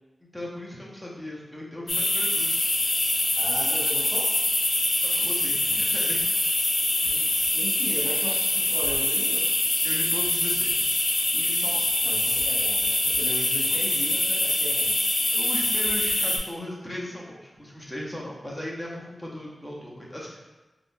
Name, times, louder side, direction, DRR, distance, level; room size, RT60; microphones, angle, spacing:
voice 1, 0.2-2.6 5.0-6.2 9.8-10.9 15.3-20.4, left 1 dB, ahead, -5 dB, 0.7 m, -37 dB
sound 1, 1.9-16.4, left 2 dB, 40° left, 0.5 m, -24 dB
voice 2, 3.4-4.3 7.0-9.6 11.3-15.0, equal, 60° right, -6 dB, 0.9 m, -37 dB
3.8 x 2.5 x 2.6 m, 1.1 s
wide cardioid pair, 130°, 0 cm